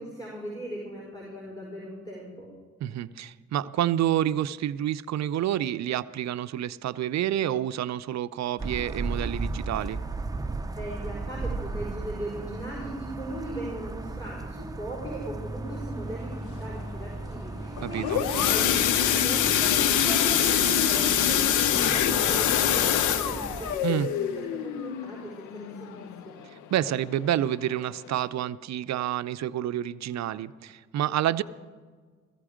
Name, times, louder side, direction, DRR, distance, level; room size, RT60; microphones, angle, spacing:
voice 1, 0.0-2.5 10.8-26.1, right 1 dB, 10° left, -3 dB, 5.3 m, -38 dB
voice 2, 2.8-10.0 17.8-18.2 23.8-24.1 26.7-31.4, right 11 dB, 65° right, 13 dB, 0.5 m, -28 dB
sound 1, 8.6-23.8, right 2 dB, 10° right, 0.7 m, -36 dB
sound 2, 17.8-26.4 26.9-27.1 27.4-27.5 28.0-28.1, left 10 dB, 85° left, 0.8 m, -25 dB
16.0 x 15.0 x 5.0 m, 1.6 s
cardioid pair, 90°, 30 cm